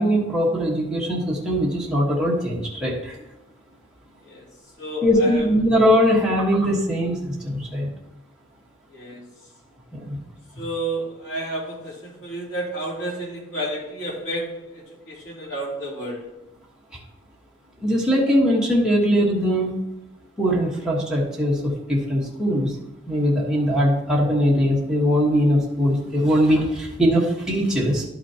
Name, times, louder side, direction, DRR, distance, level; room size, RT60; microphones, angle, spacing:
voice 1, 0.0-3.2 5.0-7.9 9.9-10.2 17.8-19.8 20.4-22.8 23.1-28.0, equal, 5° right, -5 dB, 1.4 m, -21 dB
voice 2, 4.8-5.5 8.9-9.3 10.6-16.3, right 1 dB, 70° left, -4 dB, 3.0 m, -31 dB
11.5 x 6.1 x 2.9 m, 0.90 s
head